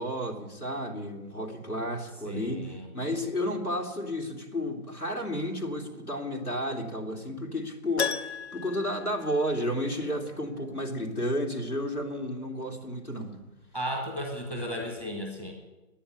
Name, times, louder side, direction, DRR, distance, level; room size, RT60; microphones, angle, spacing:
voice 1, 0.0-13.4, equal, 90° left, 1 dB, 2.9 m, -32 dB
voice 2, 2.3-2.9 13.7-15.5, equal, 5° left, 3 dB, 0.9 m, -34 dB
Keyboard (musical), 8.0-10.0 10.3-10.4 13.1-13.2 13.4-13.5, left 6 dB, 50° left, 0.6 m, -35 dB
10.5 x 9.8 x 10.0 m, 1.1 s
figure-of-eight pair, 140°, 43 cm